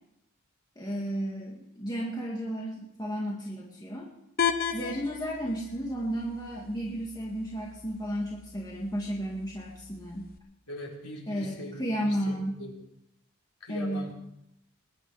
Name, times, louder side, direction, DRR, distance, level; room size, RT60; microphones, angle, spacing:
voice 1, 0.8-4.1 4.7-10.3 11.3-12.7 13.7-14.1, equal, 20° left, -2 dB, 1.8 m, -33 dB
sound 1, 4.4-10.4, left 7 dB, 40° left, 0.8 m, -36 dB
voice 2, 10.7-12.7 13.6-14.1, left 1 dB, 85° left, -2 dB, 4.2 m, -41 dB
20.5 x 11.0 x 4.8 m, 0.79 s
head